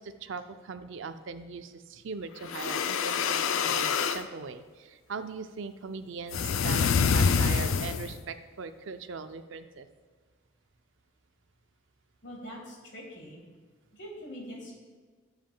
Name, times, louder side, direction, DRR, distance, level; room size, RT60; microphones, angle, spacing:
voice 1, 0.0-9.9, right 5 dB, 70° right, 10 dB, 0.4 m, -40 dB
sound 1, 2.4-4.2 6.3-8.2, left 6 dB, 80° left, 0.4 m, -26 dB
voice 2, 12.2-13.4 13.9-14.7, equal, 55° left, -1 dB, 1.8 m, -43 dB
10.5 x 7.3 x 2.2 m, 1.4 s
head